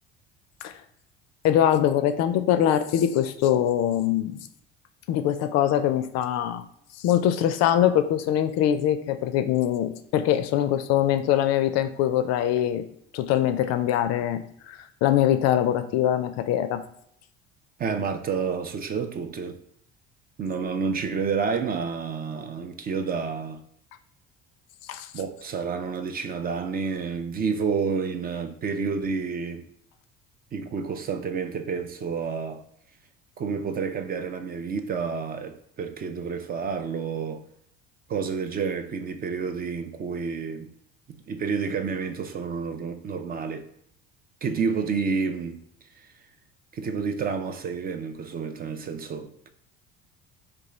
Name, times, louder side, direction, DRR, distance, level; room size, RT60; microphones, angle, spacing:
voice 1, 1.4-4.4 5.1-6.6 7.0-12.8 13.1-16.8 24.9-25.1, left 10 dB, 55° left, 0.4 m, -23 dB
voice 2, 17.8-19.6 20.4-23.6 25.1-29.7 30.5-32.6 33.4-37.4 38.1-40.7 41.1-43.7 44.4-45.6 46.7-49.5, right 5 dB, 30° right, 0.4 m, -29 dB
3.7 x 2.4 x 3.0 m
hypercardioid pair, 65°, 31 cm